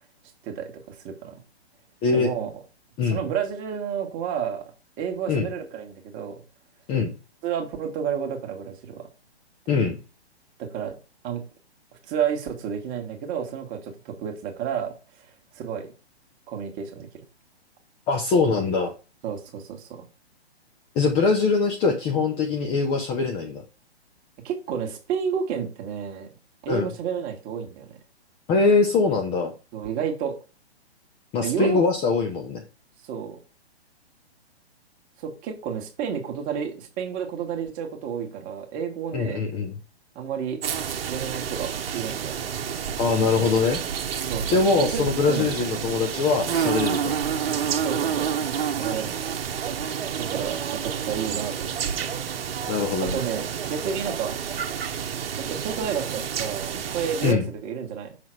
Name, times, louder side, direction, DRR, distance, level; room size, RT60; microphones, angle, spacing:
voice 1, 0.4-1.4 2.1-2.5 3.0-4.6 5.0-6.3 7.4-9.0 10.6-11.0 11.2-11.4 12.1-14.9 15.5-15.9 16.5-17.2 19.2-20.0 24.4-26.3 26.6-28.0 29.7-30.4 31.4-31.8 33.1-33.4 35.2-39.5 40.1-40.6 41.1-42.5 44.3-45.5 47.8-48.3 48.8-49.3 50.1-52.1 53.0-54.4 55.4-58.2, right 7 dB, 25° right, 1.5 m, -31 dB
voice 2, 18.1-18.9 21.0-23.6 26.7-26.9 28.5-29.5 31.3-32.6 39.1-39.7 43.0-43.8 44.5-47.1 52.7-53.2 57.2-57.4, left 4 dB, 15° left, 0.6 m, -22 dB
sound 1, 40.6-57.3, right 8 dB, 60° right, 1.1 m, -29 dB
6.4 x 3.9 x 4.5 m
hypercardioid pair, 135°, 33 cm